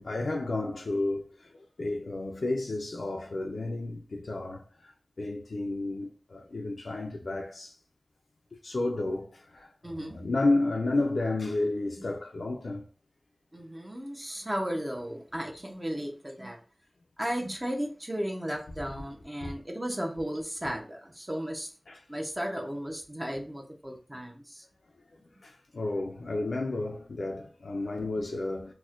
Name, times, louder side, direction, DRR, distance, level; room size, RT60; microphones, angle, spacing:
voice 1, 0.0-7.8 8.6-12.9 19.4-19.5 21.9-22.1 25.0-25.1 25.4-28.7, left 2 dB, 85° left, 0.3 m, -32 dB
voice 2, 9.8-10.2 13.5-16.6 17.2-21.7 22.1-24.6 28.0-28.1, equal, 20° right, 0.6 m, -35 dB
4.1 x 2.1 x 2.4 m
wide cardioid pair, 60°, 0 cm